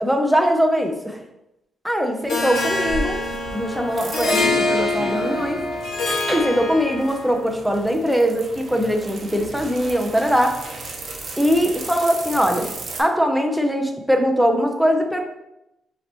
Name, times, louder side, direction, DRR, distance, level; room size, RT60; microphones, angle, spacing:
voice 1, 0.0-1.2 1.8-3.2 3.5-5.6 6.3-10.6 11.4-12.7 13.0-15.2, equal, ahead, 3 dB, 0.6 m, -21 dB
Harp, 2.3-7.3, left 2 dB, 75° left, 1.4 m, -25 dB
sound 1, 2.5-13.0, right 2 dB, 45° right, 0.8 m, -34 dB
5.5 x 3.4 x 2.9 m, 0.89 s
cardioid pair, 120°, 0 cm